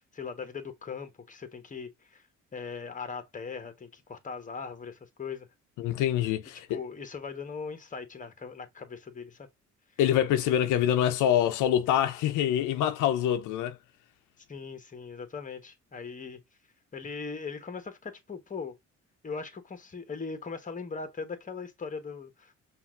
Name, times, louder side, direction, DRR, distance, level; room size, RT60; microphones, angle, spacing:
voice 1, 0.0-2.2 2.5-5.5 6.7-9.5 14.5-16.4 16.9-18.7 19.2-22.5, left 5 dB, 25° left, 1.1 m, -39 dB
voice 2, 5.8-6.8 10.0-13.8, left 10 dB, 90° left, 0.5 m, -25 dB
5.6 x 2.5 x 2.4 m
cardioid pair, 90°, 30 cm